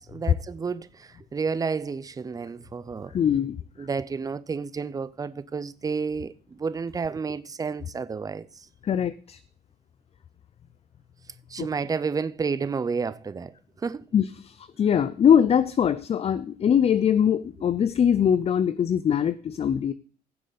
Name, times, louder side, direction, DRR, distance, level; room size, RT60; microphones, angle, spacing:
voice 1, 0.0-3.2 3.8-8.5 11.5-13.5 13.8-14.0, right 5 dB, 20° right, 0.6 m, -31 dB
voice 2, 3.1-3.9 8.8-9.4 11.6-11.7 14.1-19.9, left 8 dB, 35° left, 0.5 m, -22 dB
16.0 x 7.4 x 4.1 m
cardioid pair, 110°, 17 cm